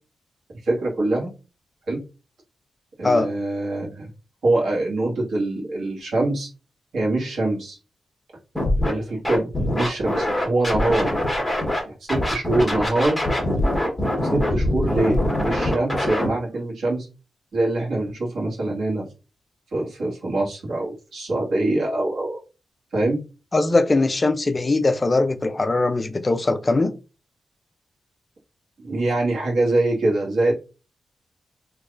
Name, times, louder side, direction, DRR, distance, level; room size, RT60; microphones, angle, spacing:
voice 1, 0.6-1.3 1.9-2.0 3.0-4.1 4.4-6.5 6.9-7.8 8.9-9.5 9.8-11.1 11.9-13.2 14.2-17.1 17.5-19.0 19.7-22.4 22.9-23.2 28.8-30.5, right 2 dB, 85° right, 1.6 m, -24 dB
Scratching (performance technique), 8.5-8.9 9.2-11.8 12.1-16.3, left 1 dB, 5° left, 1.2 m, -23 dB
voice 2, 23.5-26.9, left 2 dB, 25° left, 0.3 m, -20 dB
3.5 x 2.9 x 2.4 m
wide cardioid pair, 120°, 0 cm